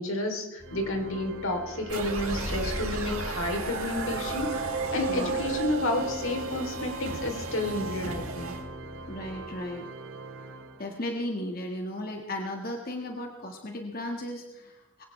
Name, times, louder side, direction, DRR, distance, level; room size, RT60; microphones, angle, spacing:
voice 1, 0.0-8.5, left 1 dB, 75° left, 3 dB, 3.3 m, -31 dB
sound 1, 0.6-9.5, left 1 dB, 15° left, 2.3 m, -48 dB
Organ, 0.6-11.3, right 3 dB, 70° right, 2.5 m, -43 dB
sound 2, 1.9-8.6, right 3 dB, 85° right, 3.4 m, -33 dB
voice 2, 5.1-5.4 9.1-9.9 10.8-15.0, left 1 dB, 45° left, 2 dB, 1.6 m, -35 dB
21.0 x 18.0 x 3.3 m, 0.96 s
head